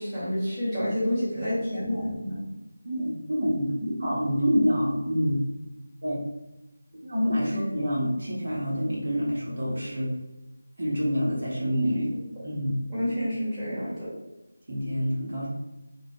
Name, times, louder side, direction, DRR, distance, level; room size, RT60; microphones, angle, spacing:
voice 1, 0.0-2.5 12.9-14.1, equal, 5° right, -14 dB, 1.1 m, -29 dB
voice 2, 2.8-5.4 6.0-6.2 7.0-10.1 10.8-12.1 12.4-12.8 14.7-15.5, equal, 55° right, -6 dB, 0.8 m, -27 dB
2.2 x 2.1 x 2.7 m, 1.0 s
figure-of-eight pair, 165°, 0 cm